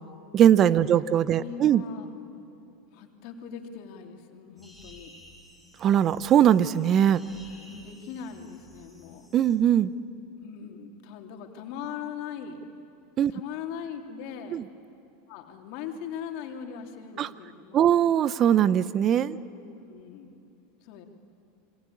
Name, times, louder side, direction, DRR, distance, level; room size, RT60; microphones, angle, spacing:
voice 1, 0.3-1.8 5.8-7.2 9.3-9.9 13.2-13.3 14.5-14.6 17.2-17.3 17.7-19.4, right 10 dB, 40° right, 17 dB, 0.9 m, -21 dB
voice 2, 1.4-2.1 2.9-5.1 7.6-9.3 10.4-12.6 13.3-14.7 15.3-18.0 19.4-20.4 20.8-21.1, left 7 dB, 60° left, 4 dB, 3.0 m, -40 dB
sound 1, 4.6-9.6, equal, 10° right, 7.7 m, -53 dB
27.5 x 23.5 x 8.7 m, 2.8 s
hypercardioid pair, 100°, 0 cm